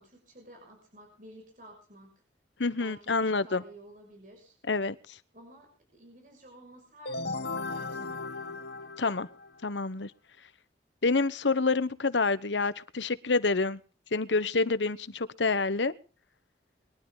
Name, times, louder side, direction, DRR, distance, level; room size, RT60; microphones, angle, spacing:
voice 1, 0.0-2.1 2.8-4.6 5.3-8.6, right 1 dB, 45° right, 6.3 m, -52 dB
voice 2, 2.6-3.6 4.7-5.2 9.0-9.3 9.6-10.1 11.0-13.8 14.1-15.9, left 3 dB, 85° left, 1.1 m, -27 dB
sound 1, 7.0-9.7, left 3 dB, 65° left, 1.3 m, -36 dB
23.0 x 12.0 x 3.9 m
head